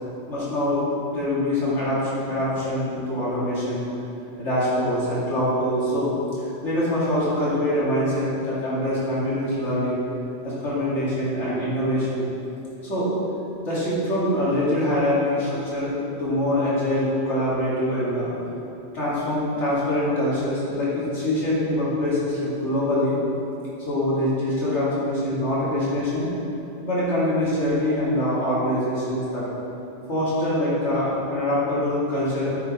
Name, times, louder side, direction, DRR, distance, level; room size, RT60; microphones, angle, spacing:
voice 1, 0.3-0.8 1.1-3.8 4.4-6.1 6.6-10.0 10.4-12.3 12.8-13.1 13.6-15.9 16.2-18.3 18.9-23.2 23.9-26.3 26.8-29.4 30.1-32.6, left 1 dB, 70° left, -9 dB, 2.6 m, -24 dB
9.5 x 6.0 x 4.1 m, 2.8 s
omnidirectional pair, 1.3 m